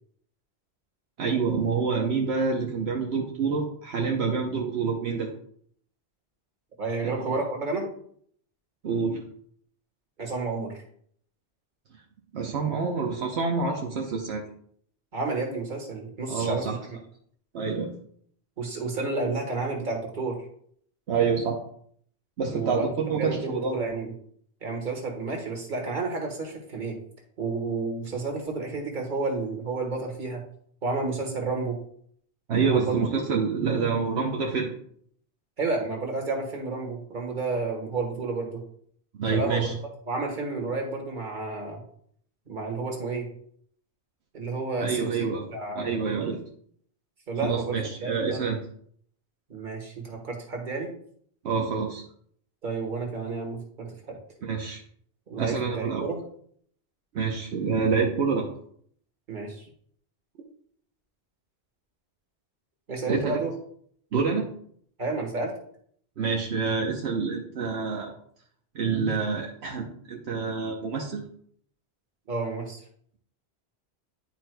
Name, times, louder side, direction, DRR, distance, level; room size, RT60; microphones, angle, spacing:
voice 1, 1.2-5.3 7.0-7.3 8.8-9.2 12.3-14.4 16.3-16.8 17.5-17.9 21.1-21.6 22.4-23.7 32.5-34.8 39.2-39.7 44.8-45.5 45.7-46.4 47.4-48.6 51.4-52.0 54.4-54.8 55.4-56.1 57.1-58.5 63.1-63.4 64.1-64.5 66.2-68.1 68.7-71.2, right 5 dB, 80° right, 0 dB, 1.1 m, -27 dB
voice 2, 6.8-7.9 10.2-10.7 13.9-14.0 15.1-16.7 18.6-20.4 22.5-22.8 23.2-24.1 24.6-27.0 27.4-30.4 30.8-31.8 32.6-32.9 35.6-38.6 39.3-39.7 40.1-41.8 42.5-43.3 44.3-45.2 45.5-46.0 47.3-48.4 49.5-50.9 52.6-54.2 55.3-56.2 59.3-59.7 62.9-63.5 65.0-65.5 72.3-72.8, right 3 dB, 50° right, 1 dB, 1.6 m, -31 dB
11.0 x 4.6 x 2.2 m, 0.63 s
omnidirectional pair, 1.1 m